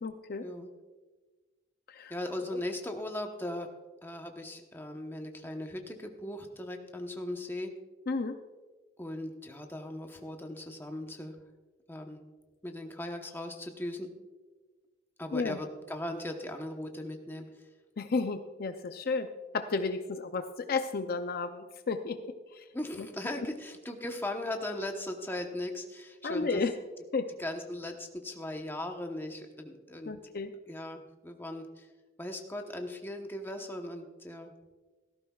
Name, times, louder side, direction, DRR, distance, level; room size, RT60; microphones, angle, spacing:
voice 1, 0.0-0.5 1.9-2.1 2.5-2.6 8.1-8.4 15.3-15.6 18.0-19.3 19.5-22.6 26.2-26.7 27.1-27.3 30.1-30.5, left 4 dB, 50° left, 8 dB, 0.5 m, -32 dB
voice 2, 2.1-3.7 4.0-7.7 9.0-11.3 11.9-12.2 12.6-14.1 15.2-17.7 22.7-26.6 27.4-30.1 30.7-31.9 32.2-34.5, left 1 dB, 10° left, 3 dB, 1.0 m, -38 dB
16.5 x 14.0 x 2.4 m, 1.3 s
head